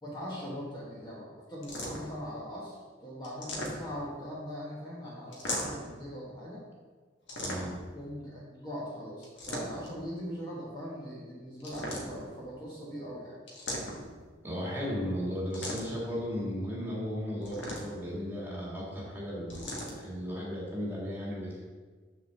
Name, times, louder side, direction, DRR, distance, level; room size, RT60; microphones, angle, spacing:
voice 1, 0.0-6.6 7.9-13.4, equal, 20° left, -6 dB, 1.4 m, -41 dB
sound 1, 1.6-2.2 3.2-4.1 5.3-5.9 7.3-7.9 9.2-10.0 11.6-12.4 13.5-14.2 15.5-16.1 17.4-18.1 19.5-20.0, left 1 dB, 70° left, 1.6 m, -38 dB
voice 2, 7.4-7.8 14.4-19.7 20.0-21.6, equal, 10° right, -6 dB, 2.1 m, -35 dB
6.6 x 4.4 x 6.7 m, 1.4 s
head